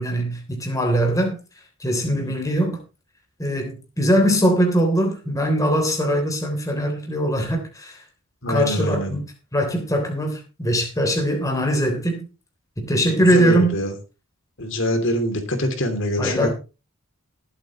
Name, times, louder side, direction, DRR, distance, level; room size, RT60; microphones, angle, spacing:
voice 1, 0.0-1.4 1.8-2.8 3.4-8.0 8.5-9.2 9.5-12.2 12.8-13.8 16.2-16.5, equal, 15° left, 3.3 m, -21 dB
voice 2, 8.4-9.2 13.3-13.9 14.6-16.5, left 1 dB, 60° left, 2.9 m, -24 dB
20.0 x 8.8 x 3.1 m
head